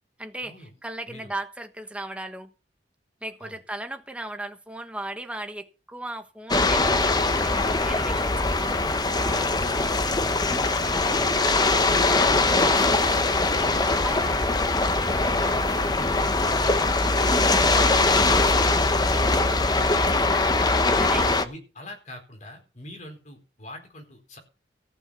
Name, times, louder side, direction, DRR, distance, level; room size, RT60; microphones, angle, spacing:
voice 1, 0.2-2.5 3.2-8.6 9.2-9.9 14.0-14.3 17.6-18.1 20.3-20.6 20.8-21.3, right 1 dB, 5° right, 1.3 m, -37 dB
sound 1, 6.5-21.4, left 3 dB, 25° left, 0.9 m, -22 dB
voice 2, 9.3-9.7 10.5-11.3 15.1-17.4 21.2-24.4, left 1 dB, 45° left, 4.3 m, -44 dB
15.0 x 6.4 x 6.8 m
head